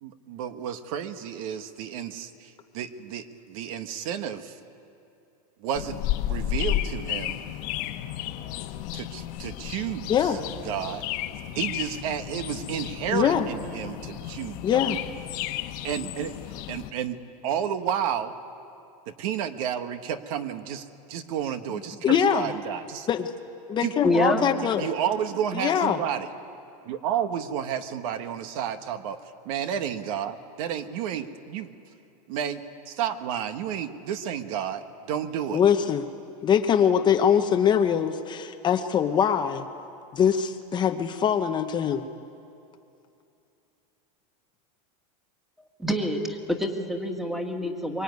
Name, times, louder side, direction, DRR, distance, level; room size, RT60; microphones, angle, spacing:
voice 1, 0.0-4.6 5.6-6.0 6.3-7.4 8.9-10.3 10.6-11.0 11.5-14.8 15.8-16.3 16.7-17.2 17.4-18.3 19.1-23.1 23.8-23.9 24.6-26.3 26.8-31.7 32.3-35.6, right 9 dB, 60° right, 9 dB, 1.5 m, -31 dB
sound 1, 5.7-16.9, left 13 dB, 45° left, 1.2 m, -33 dB
voice 2, 10.1-10.4 13.1-13.5 14.6-15.0 22.0-22.5 23.1-23.3 23.7-24.9 25.5-26.0 35.5-36.1 36.4-39.7 40.1-42.1, left 8 dB, 20° left, 6 dB, 0.8 m, -23 dB
voice 3, 24.0-24.5 45.8-48.0, equal, ahead, 4 dB, 2.0 m, -26 dB
23.5 x 23.5 x 9.6 m, 2.7 s
supercardioid pair, 150°, 20 cm